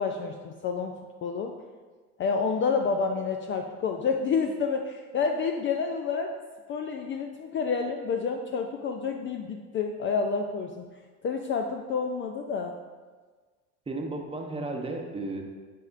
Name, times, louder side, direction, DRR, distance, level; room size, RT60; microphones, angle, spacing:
voice 1, 0.0-1.5 2.2-6.3 6.7-10.8 11.2-12.7, left 5 dB, 30° left, 4 dB, 0.4 m, -29 dB
voice 2, 13.9-15.4, right 2 dB, 15° right, 2 dB, 0.9 m, -34 dB
9.5 x 4.2 x 2.5 m, 1.4 s
hypercardioid pair, 80°, 39 cm